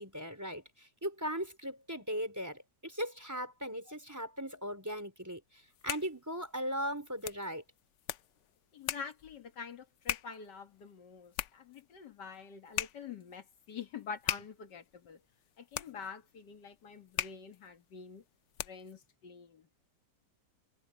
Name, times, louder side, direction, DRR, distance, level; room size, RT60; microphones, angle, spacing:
voice 1, 0.0-7.6, equal, 10° right, 4.3 m, -38 dB
sound 1, 5.5-19.0, left 12 dB, 65° left, 0.7 m, -42 dB
voice 2, 8.7-15.2 15.6-18.2 18.6-19.7, left 6 dB, 85° left, 2.2 m, -46 dB
omnidirectional pair, 1.8 m